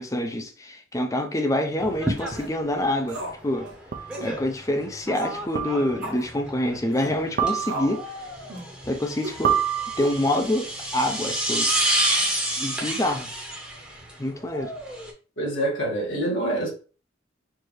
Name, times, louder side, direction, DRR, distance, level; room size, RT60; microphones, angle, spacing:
voice 1, 0.0-3.7 4.2-8.0 8.9-9.6 10.0-11.7 12.6-13.3 14.2-14.7, left 1 dB, 15° left, 0.5 m, -26 dB
sound 1, 1.8-15.1, right 1 dB, 5° right, 0.8 m, -30 dB
sound 2, 2.2-2.5 3.1-3.4 3.7-3.8 4.1-4.4 5.1-5.4 6.0-6.3 6.9-7.2 7.6-8.0 8.5-8.7 9.2-9.4 10.0-10.5, right 1 dB, 80° right, 1.2 m, -36 dB
sound 3, 2.3-2.4 3.9-4.3 5.5-6.1 7.4-8.1 9.4-10.4, right 9 dB, 50° right, 0.4 m, -27 dB
voice 2, 15.4-16.7, right 1 dB, 70° left, 1.8 m, -26 dB
4.5 x 2.6 x 3.1 m
head